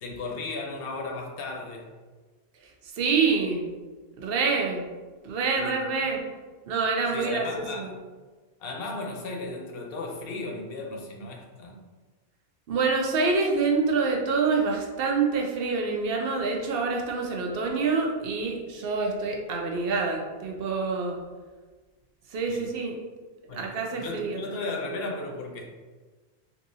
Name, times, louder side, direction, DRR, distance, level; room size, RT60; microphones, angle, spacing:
voice 1, 0.0-1.9 5.6-5.7 7.1-7.9 8.6-11.7 22.5-22.6 23.5-23.7 24.0-25.6, left 3 dB, 70° left, 1 dB, 0.8 m, -35 dB
voice 2, 2.6-3.7 4.2-4.8 5.2-6.2 6.7-7.9 12.7-21.2 22.3-23.0 23.4-24.4, right 4 dB, 70° right, 1 dB, 0.7 m, -26 dB
3.5 x 2.7 x 2.6 m, 1.3 s
omnidirectional pair, 1.0 m